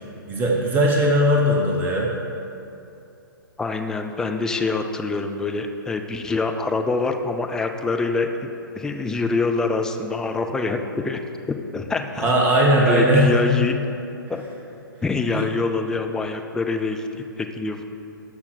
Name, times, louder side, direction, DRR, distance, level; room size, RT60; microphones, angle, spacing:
voice 1, 0.3-2.1 12.2-13.3 15.3-15.5, equal, 15° right, -1 dB, 1.0 m, -18 dB
voice 2, 3.6-8.5 8.7-11.2 11.7-12.3 12.8-13.8 14.3-14.4 15.0-17.8, left 3 dB, 5° left, 5 dB, 0.4 m, -25 dB
12.5 x 5.7 x 4.4 m, 2.7 s
figure-of-eight pair, 120°, 12 cm